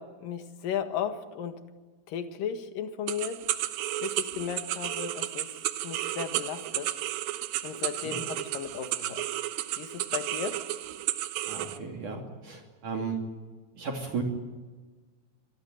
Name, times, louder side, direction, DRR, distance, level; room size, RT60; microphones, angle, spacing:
voice 1, 0.0-1.6 2.1-3.4 4.0-5.5 5.8-6.9 7.6-9.2 9.8-10.6, left 8 dB, 60° left, 7 dB, 2.9 m, -35 dB
sound 1, 3.1-11.8, right 14 dB, 75° right, 3.1 m, -33 dB
voice 2, 11.5-13.2 13.8-14.2, right 5 dB, 50° right, 1 dB, 4.0 m, -35 dB
26.0 x 18.5 x 9.2 m, 1.3 s
omnidirectional pair, 5.1 m